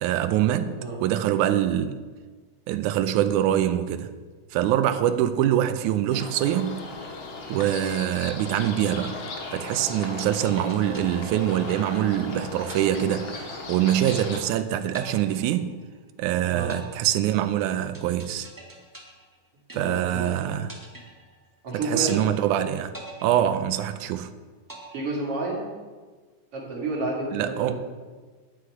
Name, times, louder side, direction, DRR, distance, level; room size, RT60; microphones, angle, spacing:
voice 1, 0.0-2.0 2.7-4.1 4.5-6.8 7.5-9.2 9.5-15.7 16.2-18.5 19.7-20.7 21.7-22.9 23.2-24.3 27.3-27.8, right 11 dB, 80° right, 2.0 m, -24 dB
sound 1, 6.1-14.4, left 3 dB, 50° left, 1.8 m, -37 dB
sound 2, 9.9-12.2 12.7-13.7 14.1-14.6 14.9-16.2 16.7-20.2 20.7-21.7 22.1-22.6 22.9-24.2 24.7-25.7, right 2 dB, 15° right, 0.7 m, -45 dB
voice 2, 19.7-20.6 21.6-22.2 24.9-25.7 26.5-27.8, right 2 dB, 50° right, 3.0 m, -30 dB
10.0 x 10.0 x 4.8 m
omnidirectional pair, 3.6 m